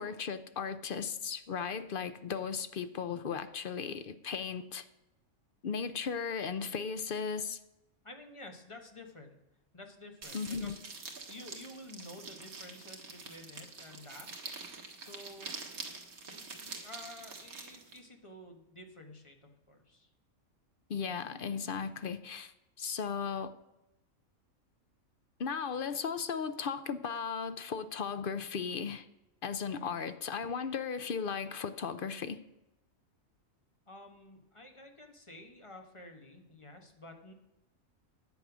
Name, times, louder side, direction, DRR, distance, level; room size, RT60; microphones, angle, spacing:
voice 1, 0.0-4.8 5.6-7.6 10.3-10.8 20.9-22.5 22.8-23.5 25.4-29.1 29.4-32.4, left 6 dB, 55° left, 0.6 m, -36 dB
voice 2, 8.0-9.4 9.7-10.8 11.3-14.3 15.0-15.5 16.3-20.1 29.7-30.0 33.9-37.3, left 1 dB, 20° left, 1.3 m, -51 dB
sound 1, 10.2-18.0, right 4 dB, 90° right, 2.1 m, -46 dB
10.5 x 8.0 x 6.1 m
omnidirectional pair, 1.5 m